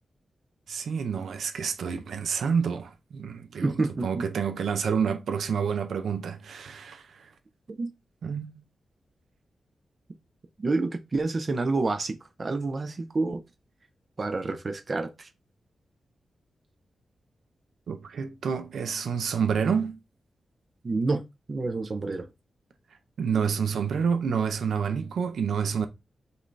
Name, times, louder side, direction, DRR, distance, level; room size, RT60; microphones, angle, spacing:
voice 1, 0.7-3.8 4.0-7.3 8.2-8.5 17.9-20.0 23.2-25.9, right 6 dB, 85° right, 0.5 m, -28 dB
voice 2, 3.6-4.2 7.7-7.9 10.6-13.4 14.2-15.3 20.8-21.2 21.5-22.3, right 3 dB, 35° right, 0.4 m, -28 dB
5.3 x 2.6 x 3.1 m
wide cardioid pair, 165°, 0 cm